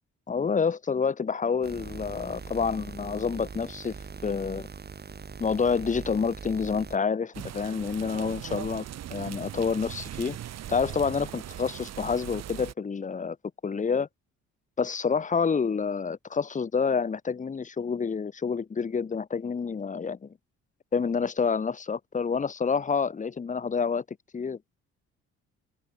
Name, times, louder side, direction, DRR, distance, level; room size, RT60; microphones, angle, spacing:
voice 1, 0.3-3.9 4.2-4.7 5.4-8.8 9.1-10.4 10.7-13.4 13.6-14.1 14.8-20.3 20.9-24.6, left 5 dB, 25° left, 0.9 m, -28 dB
sound 1, 1.6-7.0, right 5 dB, 35° right, 2.6 m, -41 dB
sound 2, 7.3-12.7, right 12 dB, 60° right, 0.9 m, -39 dB
cardioid pair, 90°, 30 cm